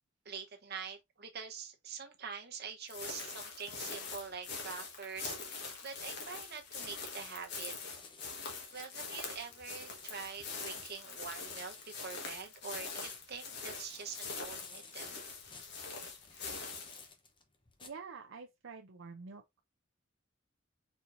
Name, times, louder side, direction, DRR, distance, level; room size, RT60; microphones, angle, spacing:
voice 1, 0.2-5.4 5.8-7.8 8.7-15.2, right 6 dB, 55° right, 1.1 m, -45 dB
sound 1, 2.9-17.1, left 4 dB, 55° left, 1.5 m, -44 dB
sound 2, 7.8-17.9, left 4 dB, 25° left, 0.9 m, -57 dB
voice 2, 17.8-19.6, right 5 dB, 70° right, 0.6 m, -48 dB
4.4 x 4.1 x 2.6 m
head